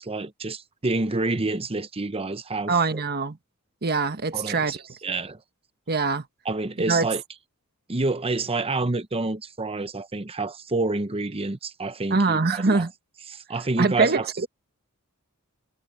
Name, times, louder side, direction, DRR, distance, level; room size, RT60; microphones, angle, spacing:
voice 1, 0.0-3.0 4.3-5.4 6.4-7.2 7.9-12.8 13.3-14.5, right 3 dB, 25° right, 0.9 m, -28 dB
voice 2, 2.7-3.4 3.8-4.8 5.9-6.3 6.9-7.1 12.1-12.9 13.8-14.5, right 4 dB, 45° right, 1.3 m, -23 dB
head